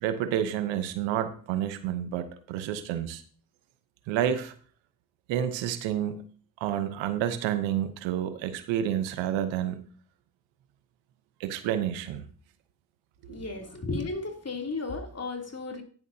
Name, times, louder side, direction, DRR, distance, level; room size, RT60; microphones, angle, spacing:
voice 1, 0.0-3.2 4.1-4.5 5.3-6.2 6.6-9.8 11.4-12.3 13.3-13.4, right 10 dB, 85° right, 1.0 m, -29 dB
voice 2, 13.3-15.8, left 3 dB, 35° left, 3.1 m, -34 dB
10.5 x 10.5 x 2.8 m
hypercardioid pair, 45°, 44 cm